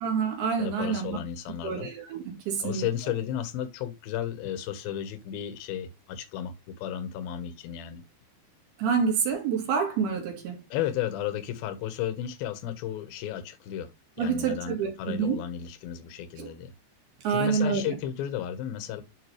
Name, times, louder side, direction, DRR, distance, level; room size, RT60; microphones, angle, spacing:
voice 1, 0.0-1.2 1.6-2.8 8.8-10.6 14.2-15.4 16.4-16.5 17.2-18.0, right 6 dB, 65° right, 3.2 m, -27 dB
voice 2, 0.6-1.9 2.6-8.0 10.7-13.9 14.2-16.7 17.3-19.0, left 10 dB, 70° left, 2.4 m, -33 dB
11.0 x 3.7 x 3.1 m
omnidirectional pair, 5.4 m